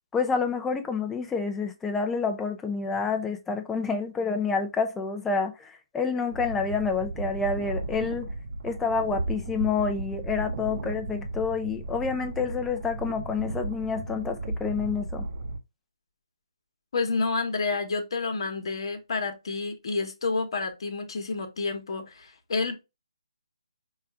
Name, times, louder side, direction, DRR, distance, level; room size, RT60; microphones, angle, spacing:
voice 1, 0.1-8.3 8.6-15.3, left 5 dB, 10° left, 0.6 m, -28 dB
sound 1, 6.3-15.6, right 2 dB, 50° right, 0.7 m, -35 dB
voice 2, 16.9-22.8, left 3 dB, 55° left, 1.2 m, -29 dB
5.4 x 2.5 x 3.5 m
figure-of-eight pair, 145°, 3 cm